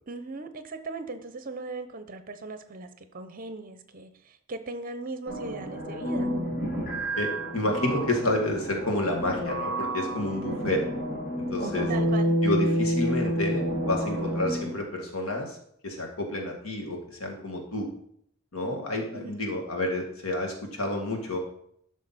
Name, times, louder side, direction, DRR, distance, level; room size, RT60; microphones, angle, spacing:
voice 1, 0.1-6.3 11.9-12.4 19.1-19.6, right 3 dB, 40° right, 9 dB, 0.8 m, -38 dB
sound 1, 5.3-14.8, equal, 40° left, 3.6 m, -29 dB
voice 2, 7.2-10.8 11.4-11.9 12.4-15.6 15.8-17.9 18.5-21.4, left 1 dB, 80° left, 2 dB, 1.9 m, -30 dB
11.0 x 6.3 x 4.2 m, 0.69 s
head